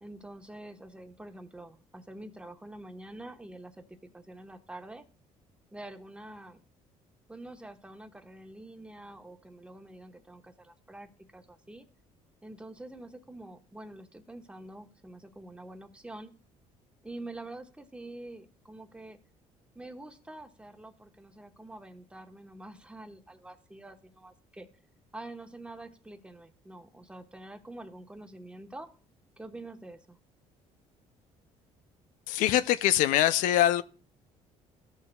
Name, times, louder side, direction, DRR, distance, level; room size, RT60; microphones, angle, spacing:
voice 1, 0.0-5.0 5.7-6.6 7.3-11.9 12.4-16.3 17.0-19.2 19.7-24.7 25.1-28.9 29.4-30.2, right 2 dB, 10° right, 1.0 m, -46 dB
voice 2, 32.3-33.8, left 13 dB, 80° left, 0.4 m, -23 dB
14.5 x 6.5 x 2.2 m
cardioid pair, 90°, 13 cm